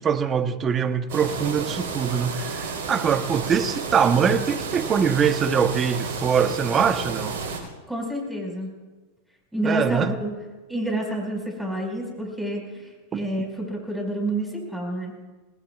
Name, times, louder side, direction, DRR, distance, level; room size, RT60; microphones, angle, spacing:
voice 1, 0.0-7.4 9.6-10.1 13.1-13.2, right 7 dB, 30° right, 1.0 m, -23 dB
sound 1, 1.1-7.6, right 5 dB, 65° right, 4.3 m, -32 dB
voice 2, 7.9-8.7 9.5-10.4 10.7-15.1, right 1 dB, 5° right, 5.4 m, -29 dB
26.0 x 19.0 x 2.4 m
hypercardioid pair, 95°, 0 cm